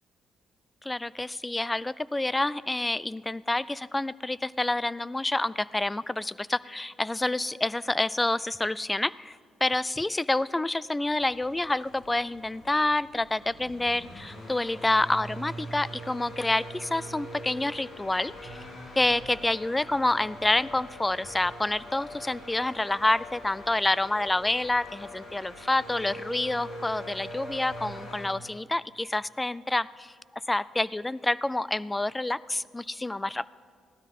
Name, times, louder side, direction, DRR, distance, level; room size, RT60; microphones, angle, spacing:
voice 1, 0.8-18.6 19.0-30.1 30.5-33.5, left 2 dB, 15° left, 20 dB, 0.3 m, -28 dB
sound 1, 11.0-28.3, equal, 60° left, 3.5 m, -43 dB
16.0 x 12.5 x 5.4 m, 2.1 s
cardioid pair, 90°, 0 cm